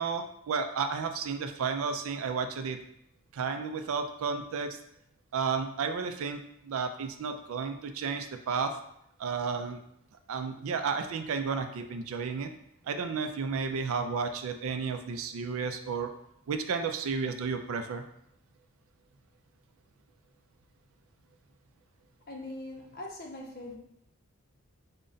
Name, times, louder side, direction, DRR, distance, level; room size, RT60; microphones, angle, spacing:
voice 1, 0.0-2.8 3.3-4.8 5.3-8.8 9.2-9.8 10.3-12.5 12.9-16.1 16.5-18.0, right 5 dB, 70° right, 8 dB, 0.4 m, -32 dB
voice 2, 22.3-23.8, left 2 dB, 45° left, 0 dB, 0.6 m, -41 dB
3.8 x 2.2 x 3.8 m, 0.74 s
head